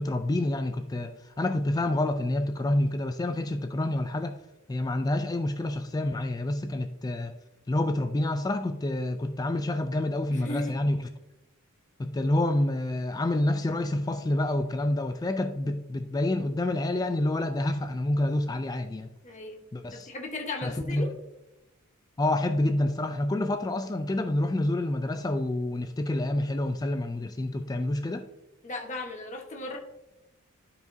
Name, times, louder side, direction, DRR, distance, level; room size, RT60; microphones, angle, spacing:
voice 1, 0.0-4.4 4.7-7.4 7.7-11.0 12.0-19.1 19.7-20.1 20.6-21.1 22.2-28.3, left 1 dB, 15° left, 0.3 m, -28 dB
voice 2, 10.3-10.8 19.2-19.6 19.9-21.1 28.6-29.8, left 2 dB, 35° left, 1.2 m, -36 dB
11.5 x 5.0 x 2.7 m
head